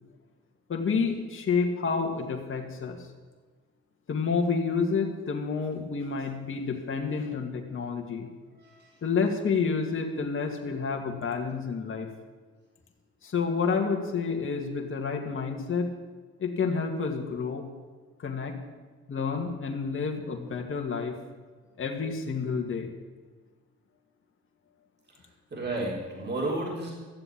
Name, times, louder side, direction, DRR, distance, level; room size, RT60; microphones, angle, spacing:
voice 1, 0.7-3.0 4.1-8.3 9.0-12.1 13.2-15.9 16.4-17.6 18.2-18.6 19.1-21.1 21.8-22.9, left 5 dB, 45° left, 2 dB, 2.1 m, -29 dB
voice 2, 25.5-26.9, right 2 dB, 35° right, -3 dB, 4.2 m, -32 dB
13.5 x 7.8 x 8.8 m, 1.4 s
cardioid pair, 90°, 30 cm